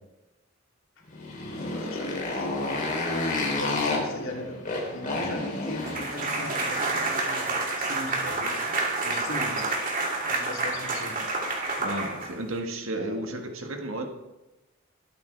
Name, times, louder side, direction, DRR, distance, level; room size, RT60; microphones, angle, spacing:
Motorcycle, 1.1-7.7, left 2 dB, 40° left, 3.5 m, -31 dB
voice 1, 1.5-2.8 3.5-4.6 4.9-8.7 9.0-9.7 10.3-11.2 13.0-13.3, left 1 dB, 80° left, -1 dB, 3.1 m, -39 dB
sound 1, 5.8-12.6, right 3 dB, 40° right, 2.6 m, -29 dB
voice 2, 11.8-14.1, right 1 dB, 80° right, 4 dB, 1.6 m, -33 dB
21.0 x 8.6 x 3.4 m, 0.99 s
head